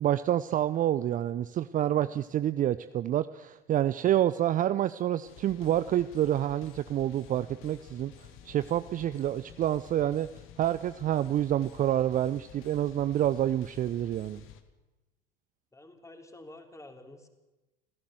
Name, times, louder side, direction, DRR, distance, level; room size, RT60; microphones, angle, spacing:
voice 1, 0.0-8.1 8.4-10.3 10.6-14.4, right 11 dB, 30° right, 14 dB, 0.7 m, -28 dB
sound 1, 5.3-14.6, left 9 dB, 45° left, 2.3 m, -52 dB
voice 2, 15.7-17.3, left 2 dB, 10° left, 6 dB, 3.6 m, -49 dB
27.5 x 16.0 x 7.7 m, 1.1 s
figure-of-eight pair, 80°, 29 cm